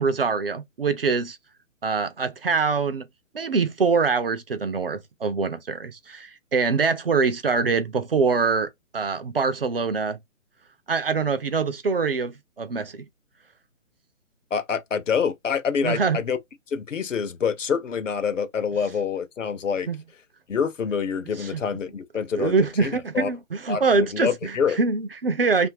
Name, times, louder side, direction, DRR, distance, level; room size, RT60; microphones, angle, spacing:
voice 1, 0.0-1.4 1.8-3.1 3.3-10.2 10.9-13.1 15.8-16.2 19.9-20.0 21.4-21.6 22.4-25.7, right 4 dB, 45° right, 0.5 m, -24 dB
voice 2, 14.5-16.4 16.7-19.9 20.5-23.3 23.7-24.8, left 6 dB, 70° left, 0.7 m, -26 dB
2.7 x 2.5 x 2.6 m
figure-of-eight pair, 135°, 40 cm